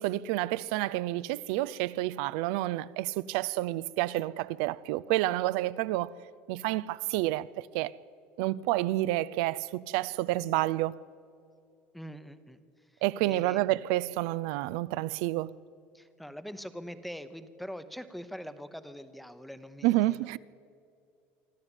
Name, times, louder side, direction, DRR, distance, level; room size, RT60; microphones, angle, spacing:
voice 1, 0.0-6.1 6.5-7.9 8.4-11.0 13.0-15.5 19.8-20.4, right 16 dB, 75° right, 0.5 m, -29 dB
voice 2, 11.9-13.8 15.9-20.3, equal, ahead, 0.8 m, -44 dB
25.0 x 13.5 x 9.0 m
cardioid pair, 170°, 5 cm